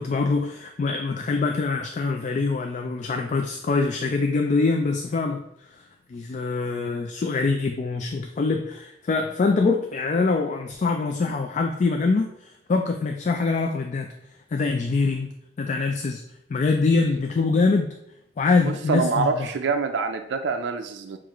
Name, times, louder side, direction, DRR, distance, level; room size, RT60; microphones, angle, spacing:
voice 1, 0.0-14.1 14.5-15.3 15.6-16.2 16.5-17.9 18.4-19.5, left 4 dB, 45° left, 4 dB, 0.3 m, -24 dB
voice 2, 18.7-21.2, right 4 dB, 80° right, 6 dB, 0.4 m, -26 dB
7.1 x 2.4 x 3.0 m, 0.79 s
head